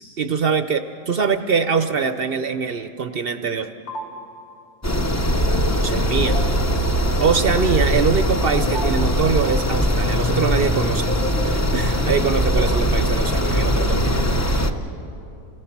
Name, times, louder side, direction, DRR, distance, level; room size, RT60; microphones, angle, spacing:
voice 1, 0.0-3.7 5.8-6.4 7.2-11.1 11.4-14.3, right 5 dB, 60° right, 9 dB, 0.6 m, -23 dB
sound 1, 3.9-4.0 6.3-6.4 8.7-8.9 11.1-11.4, equal, 65° left, 2.2 m, -29 dB
sound 2, 4.8-14.7, equal, 25° left, 0.3 m, -21 dB
28.5 x 18.5 x 5.9 m, 2.8 s
omnidirectional pair, 1.7 m